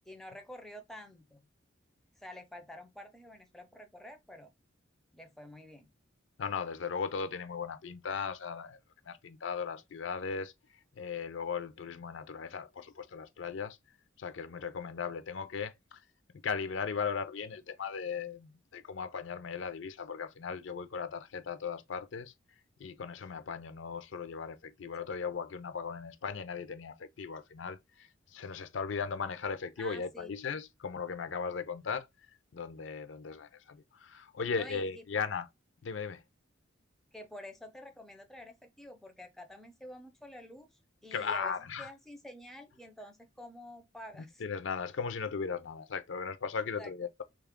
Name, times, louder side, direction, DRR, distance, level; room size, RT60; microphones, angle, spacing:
voice 1, 0.1-1.5 2.2-4.5 5.1-5.9 25.0-25.1 29.8-30.4 34.5-35.2 37.1-40.7 41.0-44.4 46.8-46.9, left 1 dB, ahead, 0.4 m, -49 dB
voice 2, 6.4-8.8 9.1-10.5 11.0-13.8 14.2-16.0 16.4-22.3 22.8-32.1 32.5-35.5 35.8-36.2 41.1-41.9 44.4-47.2, left 5 dB, 65° left, 0.5 m, -37 dB
3.1 x 2.3 x 3.5 m
head